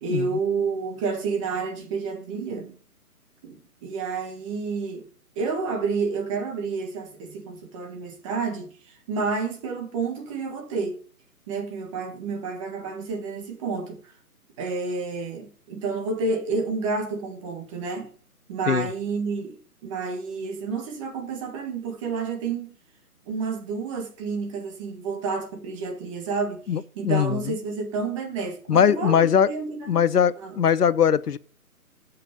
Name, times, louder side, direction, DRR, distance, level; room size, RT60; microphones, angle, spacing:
voice 1, 0.0-2.8 3.4-5.1 5.3-11.0 11.5-14.1 14.6-18.1 18.5-22.8 23.2-30.0 30.4-30.6, right 4 dB, 20° right, 1.4 m, -30 dB
voice 2, 26.7-27.5 28.7-29.5 29.9-31.4, left 8 dB, 85° left, 0.7 m, -21 dB
7.4 x 5.7 x 6.6 m
figure-of-eight pair, 145°, 45 cm